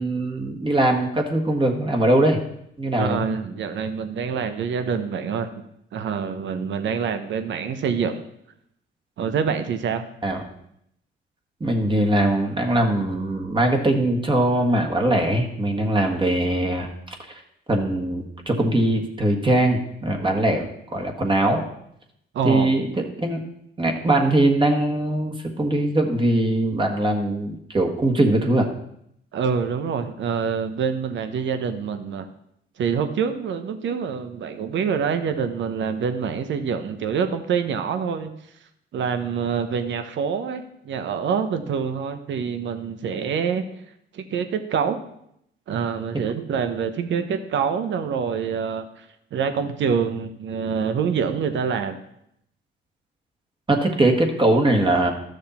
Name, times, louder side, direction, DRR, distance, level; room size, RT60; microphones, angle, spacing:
voice 1, 0.0-2.4 2.8-3.2 10.2-10.4 11.6-17.1 17.7-21.6 22.4-22.9 23.2-23.4 23.8-28.7 53.7-55.1, right 1 dB, 25° right, 2 dB, 1.6 m, -21 dB
voice 2, 3.0-5.5 5.9-8.3 9.2-10.0 22.3-22.7 29.3-32.3 32.8-38.3 38.9-43.6 44.1-45.0 45.7-49.1 49.3-52.0, right 6 dB, 70° right, 9 dB, 1.0 m, -26 dB
12.5 x 6.5 x 4.3 m, 0.75 s
cardioid pair, 90°, 20 cm